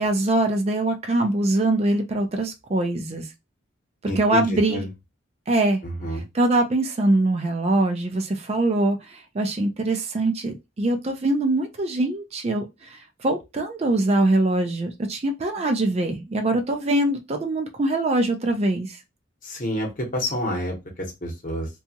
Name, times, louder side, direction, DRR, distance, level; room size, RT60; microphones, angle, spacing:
voice 1, 0.0-3.2 4.2-4.8 5.5-5.8 6.3-19.0, right 2 dB, 35° right, 0.4 m, -23 dB
voice 2, 4.1-4.9 5.8-6.2 19.4-21.7, equal, 45° left, 0.9 m, -29 dB
2.7 x 2.3 x 2.8 m
head